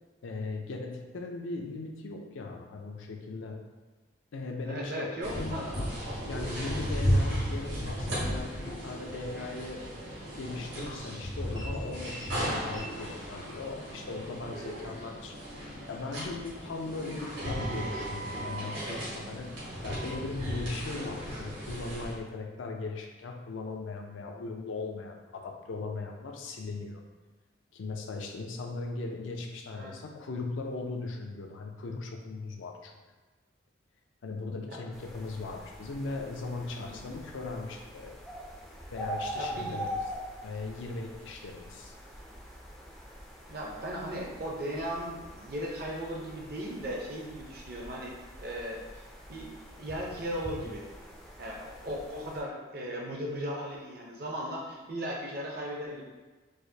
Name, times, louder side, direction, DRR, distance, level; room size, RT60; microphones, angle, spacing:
voice 1, 0.2-3.6 4.3-5.1 5.4-5.9 6.3-9.8 10.4-15.4 15.9-27.0 27.7-32.9 34.2-38.1 38.9-40.0 40.4-41.9, left 3 dB, 80° left, 2 dB, 0.4 m, -38 dB
voice 2, 4.6-5.7 29.7-29.9 36.7-37.0 39.4-39.8 43.5-49.0 49.3-49.5 49.8-50.9 51.4-56.0, equal, 50° right, -2 dB, 0.6 m, -37 dB
sound 1, 5.2-22.2, equal, 80° right, 1.4 m, -35 dB
sound 2, 34.9-52.4, equal, ahead, 0.3 m, -44 dB
4.7 x 2.1 x 2.7 m, 1.3 s
head